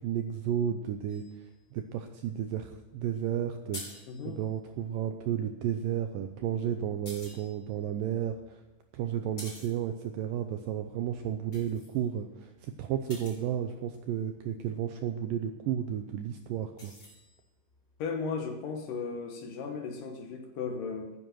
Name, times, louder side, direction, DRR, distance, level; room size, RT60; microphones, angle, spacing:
voice 1, 0.0-8.6 8.9-16.9, right 9 dB, 80° right, 7 dB, 2.0 m, -33 dB
sound 1, 1.1-4.8 6.3-14.4 15.6-18.0, left 1 dB, 30° left, 5.9 m, -52 dB
voice 2, 4.1-4.4 18.0-21.1, left 5 dB, 65° left, 4 dB, 2.5 m, -36 dB
10.0 x 10.0 x 7.6 m, 1.0 s
omnidirectional pair, 4.6 m